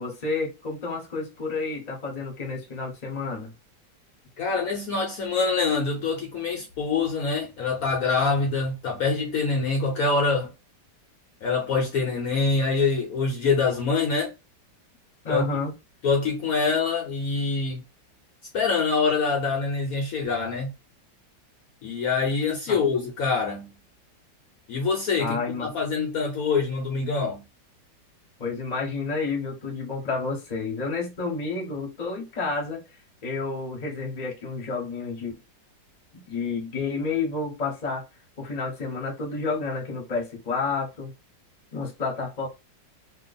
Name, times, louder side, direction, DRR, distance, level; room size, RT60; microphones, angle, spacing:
voice 1, 0.0-3.5 15.2-15.7 22.7-22.8 25.2-25.7 28.4-32.8 33.2-35.4 36.1-38.1 38.4-41.1 41.7-42.5, left 4 dB, 30° left, 0.9 m, -30 dB
voice 2, 4.4-10.5 11.4-14.3 15.3-15.4 16.0-17.8 18.5-20.7 21.8-23.7 24.7-27.4, left 4 dB, 60° left, 1.1 m, -25 dB
2.9 x 2.3 x 4.0 m
omnidirectional pair, 2.0 m